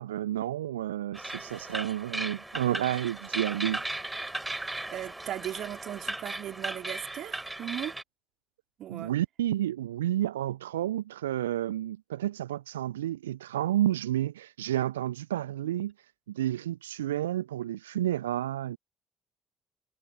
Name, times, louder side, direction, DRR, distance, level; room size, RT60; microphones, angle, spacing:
voice 1, 0.0-3.8 8.9-18.8, right 12 dB, 80° right, 0.4 m, -31 dB
sound 1, 1.1-8.0, right 2 dB, 10° right, 4.5 m, -36 dB
voice 2, 4.9-7.9 8.8-9.1, right 12 dB, 55° right, 3.4 m, -37 dB
figure-of-eight pair, 45°, 0 cm